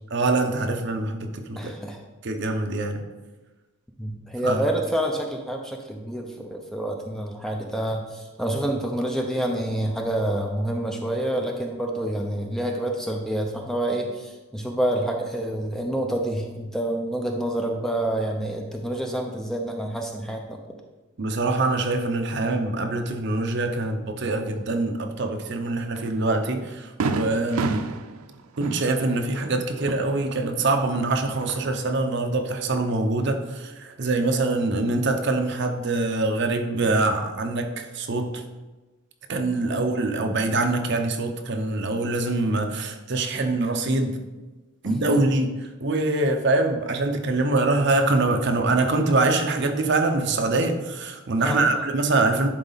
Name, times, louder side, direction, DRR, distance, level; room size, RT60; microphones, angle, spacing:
voice 1, 0.1-1.7 2.2-3.0 4.4-4.6 21.2-27.9 28.6-38.4 39.3-44.2 44.8-52.5, right 2 dB, 55° right, 5 dB, 0.7 m, -24 dB
voice 2, 1.6-2.0 4.0-20.6 39.6-39.8 44.9-45.3 51.4-51.8, right 1 dB, ahead, 2 dB, 0.6 m, -28 dB
Fireworks, 25.9-26.1 26.5-26.6 27.0-30.8 31.1-31.9, right 4 dB, 85° right, 0.5 m, -31 dB
10.5 x 4.1 x 4.0 m, 1.2 s
head